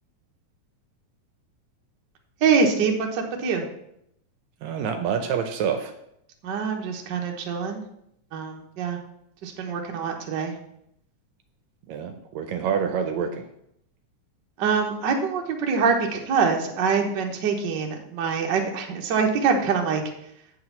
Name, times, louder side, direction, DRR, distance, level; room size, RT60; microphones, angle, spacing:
voice 1, 2.4-3.7 6.4-7.8 8.3-9.0 9.4-10.5 14.6-20.0, right 5 dB, 60° right, 2 dB, 1.2 m, -24 dB
voice 2, 4.6-5.9 11.9-13.5, right 7 dB, 75° right, 7 dB, 1.8 m, -27 dB
8.0 x 4.8 x 7.0 m, 0.77 s
omnidirectional pair, 3.5 m